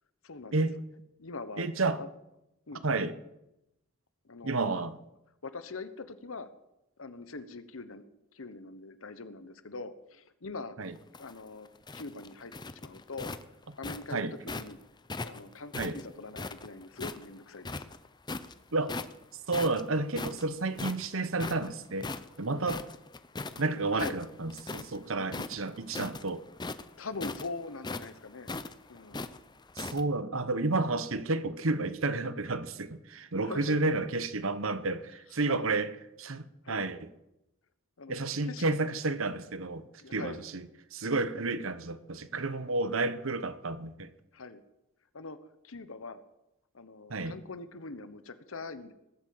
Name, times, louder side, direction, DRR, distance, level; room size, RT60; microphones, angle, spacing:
voice 1, 0.2-0.7 1.2-1.7 2.0-2.1 2.7-2.8 4.2-4.6 5.4-6.5 7.0-8.0 8.3-10.8 11.2-13.3 13.8-14.2 14.4-14.8 15.2-17.9 23.9-24.2 27.0-28.5 28.9-29.3 33.4-33.8 35.5-35.6 36.6-36.8 38.0-38.6 40.0-40.4 44.3-44.6 45.1-45.4 45.6-46.2 46.7-48.9, left 3 dB, 75° left, 1.2 m, -42 dB
voice 2, 1.6-2.0 2.8-3.1 4.4-5.0 10.8-10.9 14.1-14.3 15.7-16.0 18.7-18.9 19.5-22.1 22.4-22.8 23.6-26.4 29.8-35.9 36.2-37.1 38.1-39.8 40.1-44.1 47.1-47.4, right 3 dB, 75° right, 1.1 m, -31 dB
sound 1, 11.0-14.7 15.1-17.3 17.6-18.5 18.9-19.2 19.5-23.6 23.9-25.0 25.3-30.0, left 3 dB, 20° left, 0.6 m, -39 dB
19.0 x 8.5 x 7.9 m
head